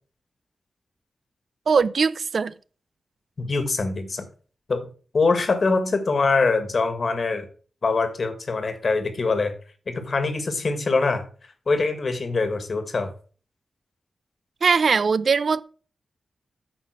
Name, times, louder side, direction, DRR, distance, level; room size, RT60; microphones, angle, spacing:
voice 1, 1.7-2.5 14.6-15.6, right 5 dB, 60° right, 0.4 m, -20 dB
voice 2, 3.4-4.3 4.7-4.9 5.1-7.4 7.8-9.5 9.9-11.2 11.7-13.1, left 3 dB, 50° left, 1.6 m, -23 dB
9.1 x 5.8 x 6.0 m
wide cardioid pair, 140°, 0 cm